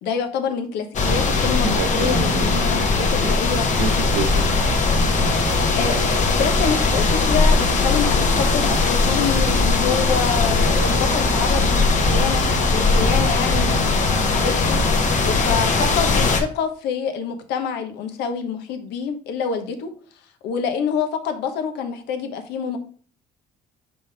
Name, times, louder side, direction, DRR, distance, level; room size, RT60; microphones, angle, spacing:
voice 1, 0.0-3.7 5.8-6.1 6.3-12.4 12.7-14.9 15.2-19.9 20.4-22.8, left 6 dB, 85° left, 7 dB, 1.1 m, -26 dB
sound 1, 0.9-16.4, left 3 dB, 45° left, 1.2 m, -19 dB
voice 2, 1.6-2.9 3.2-3.3 3.8-4.6 4.9-5.5, right 7 dB, 80° right, 10 dB, 0.8 m, -29 dB
5.4 x 5.2 x 3.4 m, 0.43 s
cardioid pair, 110°, 17 cm